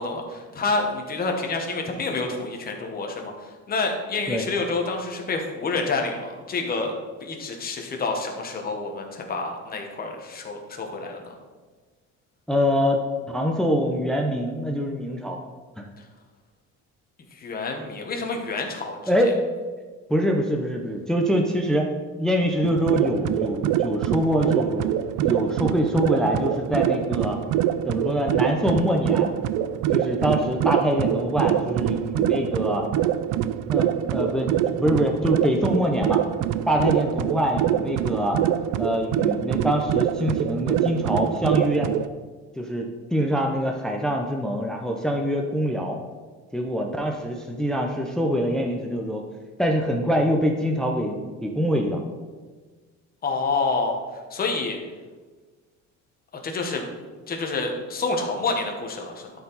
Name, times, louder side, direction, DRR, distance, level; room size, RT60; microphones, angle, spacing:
voice 1, 0.0-6.9 7.2-11.3 17.3-19.1 53.2-54.0 54.3-54.8 56.4-56.9 57.3-59.3, left 3 dB, 30° left, 2 dB, 1.2 m, -28 dB
voice 2, 12.5-15.4 15.8-15.9 19.1-19.4 20.1-21.9 22.2-24.9 25.2-27.4 27.9-29.3 29.9-32.9 33.7-36.2 36.7-38.4 38.8-41.9 42.6-46.0 46.5-49.3 49.6-52.0, equal, ahead, 1 dB, 0.5 m, -24 dB
sound 1, 22.6-42.1, right 11 dB, 85° right, 0.5 m, -25 dB
12.0 x 4.7 x 4.0 m, 1.4 s
cardioid pair, 155°, 31 cm